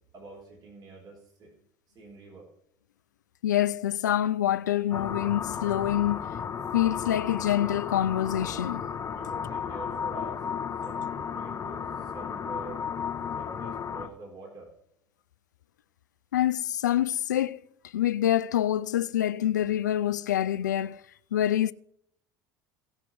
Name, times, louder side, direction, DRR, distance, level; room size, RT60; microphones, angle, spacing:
voice 1, 0.1-1.5 1.9-2.5 9.1-10.4 10.8-12.8 13.4-14.7, right 3 dB, 45° right, 3.8 m, -46 dB
voice 2, 3.4-6.3 6.7-8.8 16.3-17.6 17.9-21.0 21.3-21.7, left 12 dB, 85° left, 0.4 m, -26 dB
sound 1, 4.9-14.1, left 7 dB, 30° left, 1.1 m, -34 dB
17.0 x 5.9 x 4.8 m
hypercardioid pair, 70°, 9 cm